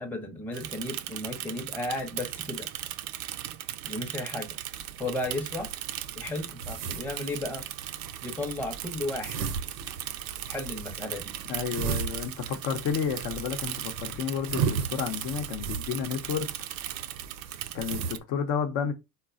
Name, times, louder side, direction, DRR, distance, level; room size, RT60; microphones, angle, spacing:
voice 1, 0.0-2.7 3.8-4.5 5.0-5.7 6.2-7.6 8.2-9.4 10.5-11.3, left 2 dB, 5° left, 0.7 m, -34 dB
Bicycle / Mechanisms, 0.5-18.2, right 13 dB, 45° right, 0.4 m, -38 dB
sound 1, 4.7-18.1, right 6 dB, 75° right, 0.7 m, -37 dB
voice 2, 11.5-16.5 17.7-18.9, left 7 dB, 55° left, 0.8 m, -31 dB
3.9 x 2.2 x 2.5 m
hypercardioid pair, 80°, 49 cm